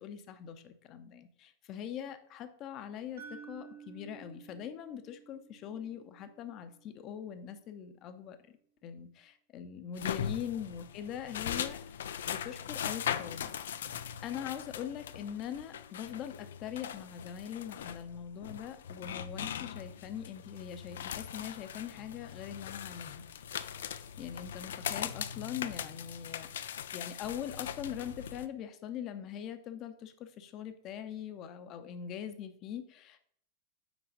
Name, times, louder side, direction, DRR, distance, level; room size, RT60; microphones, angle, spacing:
voice 1, 0.0-8.4 8.8-13.5 14.2-23.3 24.2-33.2, left 9 dB, 35° left, 10 dB, 0.7 m, -42 dB
sound 1, 3.2-7.2, right 6 dB, 70° right, 1.5 m, -53 dB
sound 2, 9.9-28.5, left 9 dB, 60° left, 0.4 m, -40 dB
6.1 x 4.9 x 5.2 m, 0.64 s
figure-of-eight pair, 90°, 0 cm